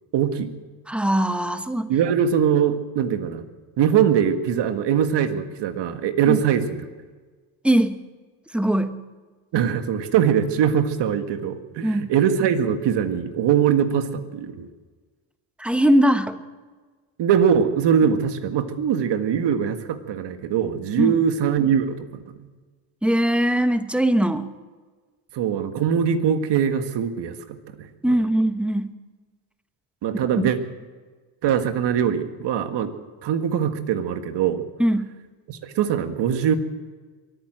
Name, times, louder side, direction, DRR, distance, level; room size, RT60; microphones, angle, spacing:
voice 1, 0.1-0.5 1.9-3.4 3.8-6.8 9.5-14.7 17.2-22.5 25.3-28.2 30.0-30.6 31.4-32.9 33.2-34.7 35.5-36.6, right 8 dB, 60° right, 8 dB, 1.7 m, -22 dB
voice 2, 0.9-1.9 6.3-6.4 7.6-8.0 8.5-9.0 11.8-12.1 15.6-16.4 21.0-21.2 23.0-24.5 28.0-28.9 30.3-30.5 34.8-35.1, right 1 dB, ahead, 10 dB, 1.0 m, -21 dB
23.5 x 9.3 x 6.4 m, 1.4 s
supercardioid pair, 90°, 48 cm